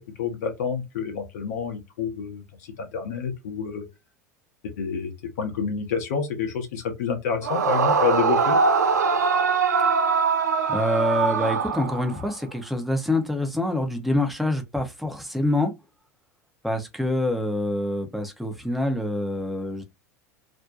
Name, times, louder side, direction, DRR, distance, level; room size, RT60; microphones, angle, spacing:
voice 1, 0.0-3.8 4.8-5.1 5.4-8.6, left 6 dB, 65° left, 0.7 m, -28 dB
Yell / Screaming, 7.4-12.3, right 5 dB, 80° right, 0.4 m, -22 dB
voice 2, 10.7-15.7 16.6-19.8, left 1 dB, ahead, 0.7 m, -26 dB
2.6 x 2.1 x 2.4 m
figure-of-eight pair, 80°, 9 cm